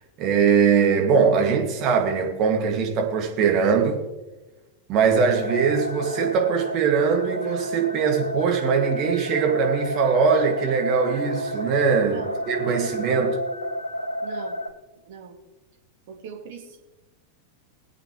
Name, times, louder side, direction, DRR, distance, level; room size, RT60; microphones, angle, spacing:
voice 1, 0.2-4.0 4.9-12.2 12.5-13.4, right 6 dB, 35° right, 2.1 m, -21 dB
sound 1, 5.1-14.7, equal, 80° left, 0.9 m, -31 dB
voice 2, 12.0-12.4 12.8-13.1 14.2-14.6 15.1-15.3 16.1-16.8, right 7 dB, 50° right, 2.2 m, -40 dB
22.0 x 8.6 x 3.1 m
figure-of-eight pair, 90°, 0 cm